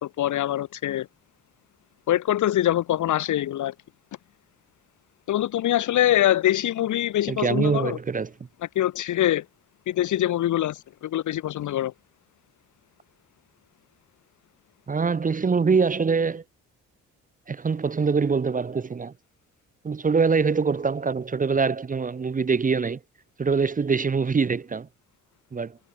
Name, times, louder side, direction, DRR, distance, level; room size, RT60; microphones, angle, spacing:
voice 1, 0.0-1.1 2.1-3.7 5.3-8.0 8.8-9.5 9.9-11.9, left 12 dB, 75° left, 4.1 m, -24 dB
voice 2, 7.3-8.3 14.9-16.4 17.5-19.1 19.8-23.0 23.4-24.9 25.5-25.8, right 5 dB, 25° right, 1.0 m, -24 dB
cardioid pair, 90°, 30 cm